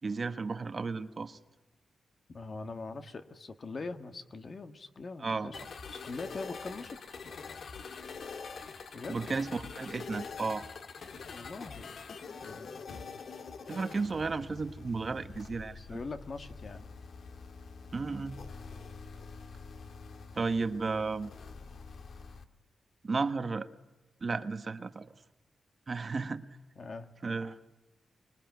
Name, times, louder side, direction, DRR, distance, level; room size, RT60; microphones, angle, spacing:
voice 1, 0.0-1.4 5.2-5.5 9.1-10.6 13.7-16.0 17.9-18.4 20.3-21.3 23.0-23.7 24.2-25.1 25.9-26.4 27.2-27.6, right 4 dB, 35° right, 10 dB, 1.1 m, -33 dB
voice 2, 2.3-5.6 5.9-7.0 8.9-9.2 11.3-11.9 12.4-12.8 15.8-16.9 26.8-27.1, left 3 dB, 40° left, 9 dB, 1.6 m, -42 dB
sound 1, 5.5-22.4, left 5 dB, 60° left, 1.6 m, -45 dB
25.5 x 21.0 x 9.3 m, 1.1 s
wide cardioid pair, 155°, 0 cm